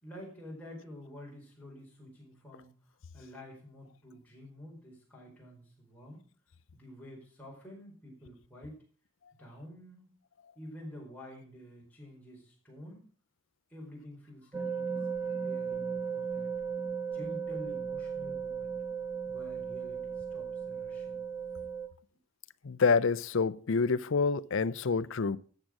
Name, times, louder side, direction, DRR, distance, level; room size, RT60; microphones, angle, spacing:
voice 1, 0.0-6.2 6.7-8.8 9.4-10.1 10.5-13.1 13.7-16.5 17.1-18.8 19.3-21.2, equal, 5° left, 4.7 m, -49 dB
sound 1, 14.5-21.9, right 6 dB, 15° right, 1.3 m, -36 dB
voice 2, 22.6-25.4, left 4 dB, 70° left, 0.5 m, -27 dB
13.5 x 7.6 x 6.4 m
head